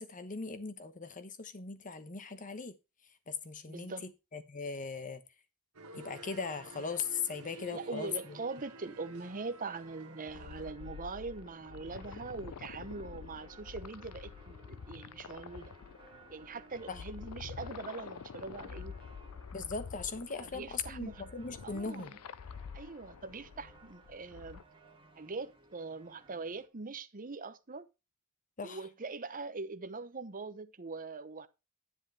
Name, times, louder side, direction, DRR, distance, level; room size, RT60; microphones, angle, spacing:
voice 1, 0.0-2.7 3.3-5.2 6.0-8.4 16.9-17.0 19.5-22.1 28.6-28.8, left 5 dB, 35° left, 1.1 m, -39 dB
voice 2, 3.7-4.1 7.7-15.7 16.3-19.0 20.4-21.2 21.6-22.2 22.7-24.6 25.2-27.9 28.6-31.5, right 3 dB, 40° right, 0.9 m, -42 dB
sound 1, 5.7-10.7, right 2 dB, 85° right, 1.6 m, -51 dB
sound 2, 7.9-26.7, right 3 dB, 25° right, 1.7 m, -60 dB
sound 3, 10.3-24.6, left 6 dB, 75° left, 0.5 m, -48 dB
10.5 x 9.8 x 3.4 m
head